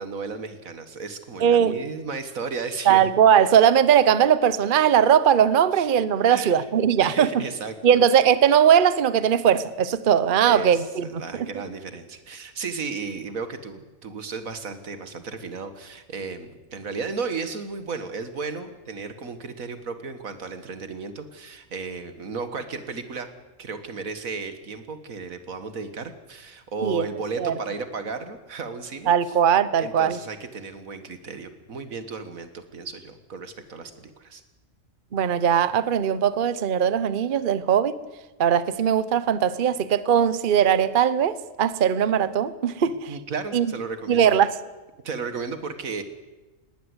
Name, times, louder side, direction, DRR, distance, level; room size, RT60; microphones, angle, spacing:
voice 1, 0.0-3.1 5.7-5.9 6.3-6.6 7.0-8.0 10.4-23.3 23.6-29.1 29.8-34.4 43.1-44.3 45.0-46.0, right 4 dB, 90° right, 2.1 m, -34 dB
voice 2, 1.4-1.7 2.9-7.4 7.8-11.1 11.3-11.5 26.8-27.0 27.4-27.5 29.1-30.2 35.1-37.9 38.4-43.1 43.5-43.7 44.1-44.5, right 8 dB, 45° right, 0.9 m, -19 dB
19.5 x 18.0 x 8.0 m
omnidirectional pair, 1.4 m